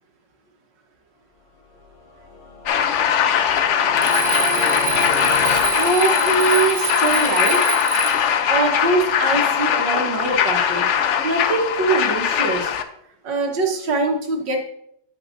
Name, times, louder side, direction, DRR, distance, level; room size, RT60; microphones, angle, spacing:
sound 1, 1.8-7.0, left 1 dB, 50° left, 0.7 m, -33 dB
sound 2, 2.7-12.8, left 8 dB, 80° left, 0.6 m, -20 dB
Alarm, 4.0-8.4, right 7 dB, 60° right, 1.0 m, -27 dB
voice 1, 5.7-7.8 8.5-10.9 11.2-12.7 13.2-14.6, right 3 dB, 85° right, 2 dB, 1.9 m, -22 dB
9.0 x 8.6 x 2.6 m, 0.73 s
omnidirectional pair, 1.9 m